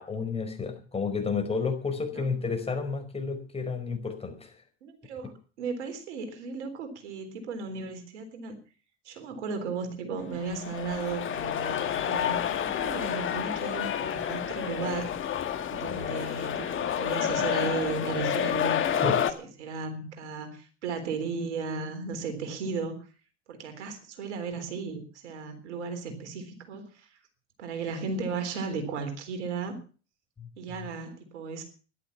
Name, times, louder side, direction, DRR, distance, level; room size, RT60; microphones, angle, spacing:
voice 1, 0.0-4.5 15.9-16.4 19.0-19.2 30.4-30.5, left 5 dB, 15° left, 5 dB, 5.0 m, -31 dB
voice 2, 4.8-5.3 5.6-8.6 9.0-15.1 15.7-23.1 23.5-27.2 27.6-29.8 30.6-31.6, right 4 dB, 70° right, 7 dB, 3.8 m, -35 dB
sound 1, 10.3-19.3, left 9 dB, 35° left, 2.0 m, -29 dB
13.5 x 11.5 x 7.1 m, 0.39 s
hypercardioid pair, 85°, 36 cm